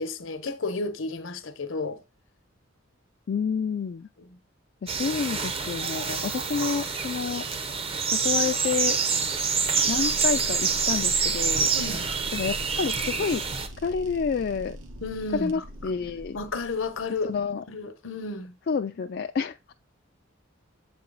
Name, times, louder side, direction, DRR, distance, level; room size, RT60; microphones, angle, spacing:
voice 1, 0.0-2.0 4.2-4.4 11.7-12.1 15.0-15.6 16.3-17.3 17.7-18.6, left 3 dB, 75° left, 0.9 m, -32 dB
voice 2, 3.3-4.1 4.8-7.4 8.1-9.0 9.9-11.7 12.3-13.4 13.8-14.8 15.3-16.4 17.2-17.6 18.7-19.7, left 5 dB, 50° left, 0.3 m, -29 dB
sound 1, 4.9-13.7, right 5 dB, 30° right, 0.7 m, -27 dB
sound 2, 9.1-17.6, equal, 75° right, 1.3 m, -42 dB
7.7 x 4.2 x 3.9 m
head